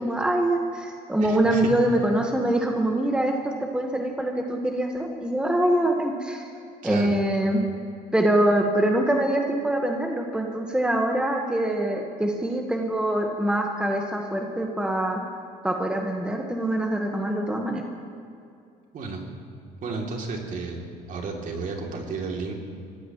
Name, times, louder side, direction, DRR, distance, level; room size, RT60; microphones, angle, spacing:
voice 1, 0.0-6.5 6.8-7.6 8.1-15.2 15.6-17.8, right 1 dB, 5° right, 1 dB, 1.4 m, -24 dB
voice 2, 1.2-1.7 6.8-7.1 18.9-19.2 19.8-20.8 21.1-22.5, right 4 dB, 50° right, 0 dB, 2.9 m, -32 dB
23.0 x 16.5 x 3.1 m, 2.5 s
cardioid pair, 100°, 17 cm